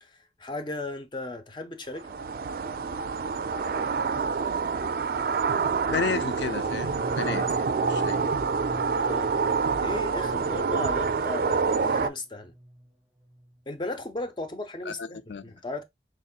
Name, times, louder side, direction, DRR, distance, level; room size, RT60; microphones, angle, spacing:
voice 1, 0.0-2.2 9.0-9.5 9.8-12.5 13.7-15.8, left 2 dB, 25° left, 0.6 m, -36 dB
sound 1, 2.0-12.1, right 5 dB, 50° right, 0.4 m, -27 dB
voice 2, 5.9-8.2 14.9-15.4, left 5 dB, 70° left, 0.4 m, -33 dB
sound 2, 6.2-12.1 12.4-12.9 13.2-13.6, equal, ahead, 1.1 m, -43 dB
4.0 x 3.6 x 2.3 m
head